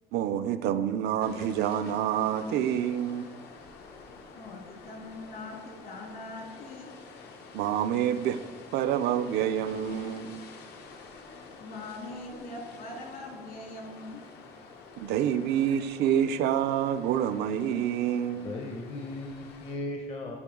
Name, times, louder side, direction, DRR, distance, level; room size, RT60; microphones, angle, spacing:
voice 1, 0.1-3.4 7.5-8.4 8.7-10.4 15.0-18.5, right 10 dB, 80° right, 11 dB, 0.4 m, -27 dB
sound 1, 1.2-19.8, left 4 dB, 80° left, 0.9 m, -49 dB
voice 2, 4.3-6.9 11.6-14.2, left 2 dB, 60° left, 0 dB, 1.8 m, -42 dB
voice 3, 18.3-20.4, left 2 dB, 35° left, 2 dB, 0.6 m, -37 dB
9.7 x 3.8 x 3.6 m, 1.4 s
cardioid pair, 110°, 17 cm